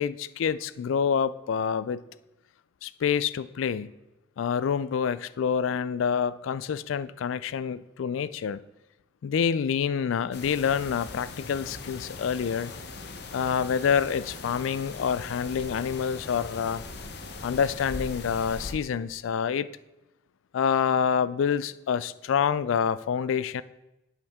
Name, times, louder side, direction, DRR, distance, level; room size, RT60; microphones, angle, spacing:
voice 1, 0.0-2.0 2.8-3.9 4.4-8.6 9.2-12.7 13.3-16.8 17.4-19.7 20.5-23.6, left 7 dB, 85° left, 17 dB, 0.3 m, -27 dB
sound 1, 10.3-18.7, left 3 dB, 55° left, 0.8 m, -40 dB
8.5 x 8.1 x 3.6 m, 0.99 s
head